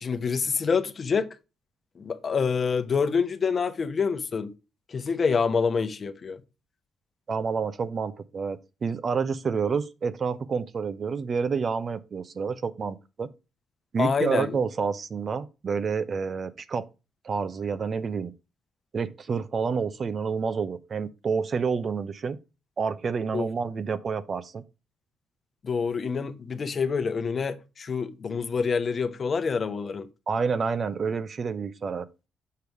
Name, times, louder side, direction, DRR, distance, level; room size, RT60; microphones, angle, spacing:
voice 1, 0.0-1.3 2.0-4.5 4.9-6.4 14.0-14.6 23.3-23.5 25.6-30.1, left 5 dB, 40° left, 0.9 m, -27 dB
voice 2, 7.3-13.3 13.9-16.9 17.2-18.3 18.9-22.4 22.8-24.6 30.3-32.1, right 5 dB, 45° right, 0.7 m, -29 dB
6.7 x 5.3 x 4.6 m
cardioid pair, 90°, 0 cm